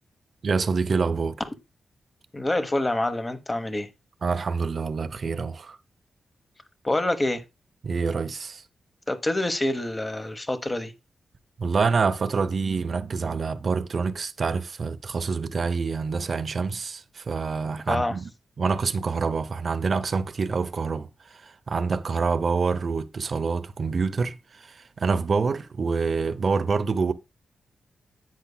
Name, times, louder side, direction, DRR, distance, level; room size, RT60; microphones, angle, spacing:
voice 1, 0.4-1.4 4.2-5.8 7.8-8.6 11.6-18.3 18.6-27.1, right 4 dB, 45° right, 0.6 m, -26 dB
voice 2, 2.3-3.9 6.8-7.4 9.1-10.9 17.9-18.1, left 1 dB, 20° left, 1.0 m, -26 dB
10.5 x 8.2 x 2.2 m
wide cardioid pair, 130°, 0 cm